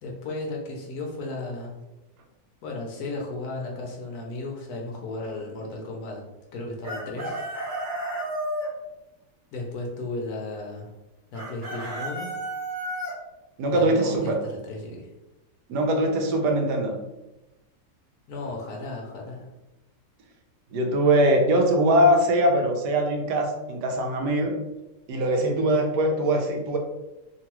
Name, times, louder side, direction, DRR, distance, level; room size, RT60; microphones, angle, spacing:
voice 1, 0.0-1.8 2.6-6.2 6.5-7.4 9.5-10.9 11.3-12.3 13.7-15.1 18.3-19.5, left 2 dB, 70° left, 0 dB, 1.0 m, -34 dB
Chicken rooster, 6.8-8.7 11.3-13.1, right 1 dB, 40° right, 0.8 m, -32 dB
voice 2, 13.6-14.4 15.7-17.0 20.7-24.6 25.1-26.8, right 1 dB, 75° right, 3 dB, 1.1 m, -22 dB
3.1 x 2.3 x 2.9 m, 1.0 s
omnidirectional pair, 1.8 m